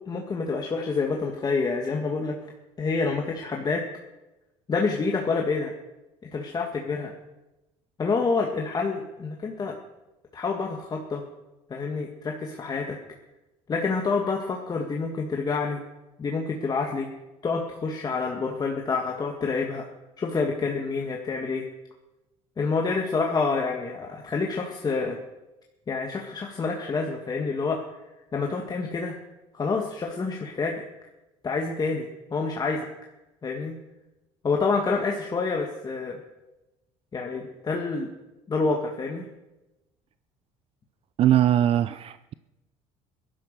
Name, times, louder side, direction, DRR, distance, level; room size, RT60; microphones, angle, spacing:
voice 1, 0.1-2.4 2.8-3.8 4.7-5.7 6.3-7.1 8.0-9.7 10.3-11.2 11.7-13.0 13.7-15.8 16.2-17.1 17.4-19.9 20.2-21.7 22.6-25.2 25.9-27.8 28.3-29.2 29.5-30.8 31.4-32.9 33.4-33.8 34.4-36.2 37.1-38.1 38.5-39.3, left 4 dB, 30° left, 1 dB, 1.9 m, -27 dB
voice 2, 41.2-42.3, right 11 dB, 45° right, 14 dB, 0.5 m, -21 dB
16.0 x 11.5 x 6.8 m, 1.0 s
cardioid pair, 105°, 13 cm